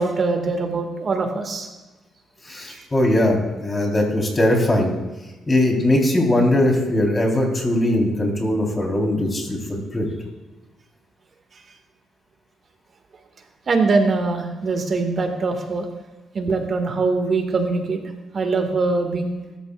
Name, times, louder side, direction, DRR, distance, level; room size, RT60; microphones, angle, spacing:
voice 1, 0.0-1.7 2.7-2.8 13.7-15.9 16.3-18.0 18.3-19.3, right 3 dB, 45° right, 4 dB, 2.1 m, -22 dB
voice 2, 2.5-4.9 5.5-10.1, left 1 dB, 20° left, 0 dB, 4.3 m, -20 dB
23.0 x 13.5 x 2.6 m, 1.1 s
cardioid pair, 90°, 0 cm